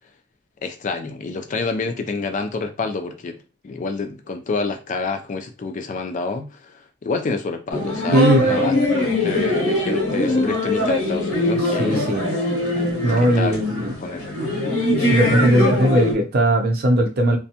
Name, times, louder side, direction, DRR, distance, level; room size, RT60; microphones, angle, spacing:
voice 1, 0.6-3.4 3.6-12.2 13.2-13.6 14.0-14.4, left 3 dB, 35° left, 0.4 m, -28 dB
sound 1, 7.7-16.1, left 1 dB, 90° left, 0.9 m, -22 dB
voice 2, 8.1-8.6 11.8-12.2 13.0-13.9 15.1-17.4, right 1 dB, 45° right, 0.6 m, -18 dB
2.5 x 2.2 x 2.7 m
head